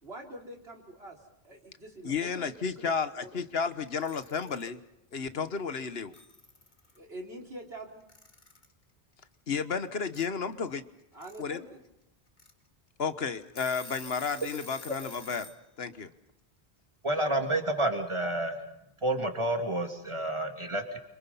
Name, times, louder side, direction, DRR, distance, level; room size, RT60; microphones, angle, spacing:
voice 1, 0.0-1.2 1.4-3.5 5.4-5.5 7.0-8.0 11.1-11.8, right 1 dB, 80° right, 1 dB, 4.1 m, -45 dB
voice 2, 2.0-4.8 5.1-6.1 9.5-10.8 11.4-11.6 13.0-15.5 15.8-16.1, left 5 dB, 75° left, 12 dB, 1.4 m, -32 dB
Alarm / Clock, 3.9-4.7 5.8-5.9 6.1-7.0 8.1-8.7 10.1-10.3 11.0-11.4 11.9-12.0 12.4-12.5 13.0-13.1 13.4-15.6, left 3 dB, 50° left, 2.3 m, -48 dB
voice 3, 17.0-18.6 19.0-21.0, right 1 dB, 30° right, 4 dB, 2.8 m, -29 dB
28.5 x 25.5 x 5.7 m, 0.86 s
omnidirectional pair, 1.0 m